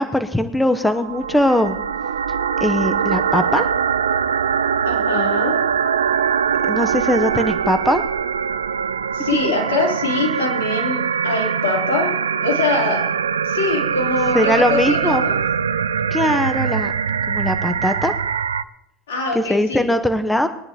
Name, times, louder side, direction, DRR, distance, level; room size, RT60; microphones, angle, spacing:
voice 1, 0.0-1.8 2.6-3.6 6.6-8.0 14.3-15.2 16.1-16.9 17.3-18.1 19.3-20.5, left 1 dB, 5° left, 9 dB, 0.9 m, -20 dB
sound 1, 0.8-18.6, right 7 dB, 85° right, 0.3 m, -22 dB
voice 2, 4.8-5.6 9.1-13.0 13.4-15.4 19.1-19.9, left 2 dB, 75° left, -1 dB, 3.6 m, -23 dB
21.5 x 10.5 x 3.0 m, 0.86 s
hypercardioid pair, 75°, 0 cm